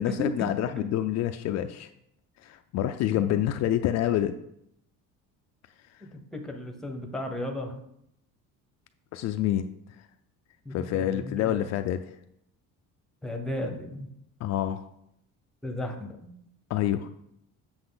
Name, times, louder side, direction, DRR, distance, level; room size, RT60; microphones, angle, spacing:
voice 1, 0.0-1.9 2.4-4.3 9.1-9.7 10.7-12.1 14.4-14.9 16.7-17.1, left 12 dB, 50° left, 8 dB, 0.4 m, -27 dB
voice 2, 6.0-7.8 10.6-11.6 13.2-14.1 15.6-16.3, left 1 dB, ahead, 3 dB, 0.8 m, -35 dB
7.9 x 6.6 x 3.9 m, 0.76 s
cardioid pair, 165°, 33 cm